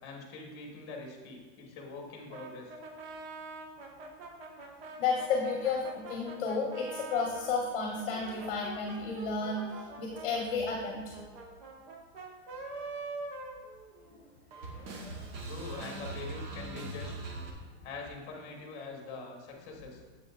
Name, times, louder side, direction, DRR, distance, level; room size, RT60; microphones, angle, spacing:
voice 1, 0.0-2.8 15.5-17.3 17.8-20.0, left 3 dB, 30° left, 0 dB, 1.4 m, -44 dB
sound 1, 2.3-7.5 7.9-14.2 14.5-17.5, right 3 dB, 50° right, 1.2 m, -43 dB
voice 2, 5.0-11.1 14.8-14.9, left 4 dB, 50° left, 0 dB, 1.0 m, -32 dB
8.1 x 7.4 x 2.4 m, 1.5 s
supercardioid pair, 170°, 36 cm